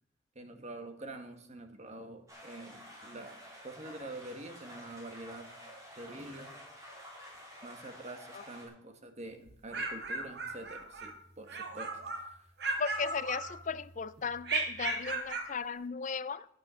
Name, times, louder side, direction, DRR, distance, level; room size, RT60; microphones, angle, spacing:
voice 1, 0.3-5.5 6.0-6.6 7.6-12.5, right 2 dB, 35° right, 1.5 m, -46 dB
sound 1, 2.3-8.7, equal, 15° right, 4.2 m, -50 dB
sound 2, 9.5-11.1 11.5-12.3 12.6-13.9 14.4-15.5, right 3 dB, 55° right, 1.7 m, -36 dB
voice 2, 12.8-16.5, left 5 dB, 40° left, 0.5 m, -36 dB
11.0 x 9.4 x 6.3 m
head